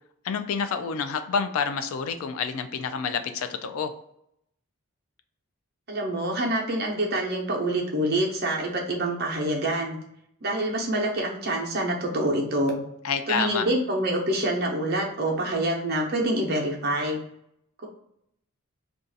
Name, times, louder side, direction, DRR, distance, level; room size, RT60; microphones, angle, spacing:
voice 1, 0.2-4.0 13.0-13.7, left 6 dB, 75° left, 9 dB, 0.3 m, -28 dB
voice 2, 5.9-10.0 10.4-12.8 13.3-17.2, right 1 dB, 45° right, -1 dB, 0.7 m, -26 dB
2.5 x 2.3 x 3.9 m, 0.75 s
head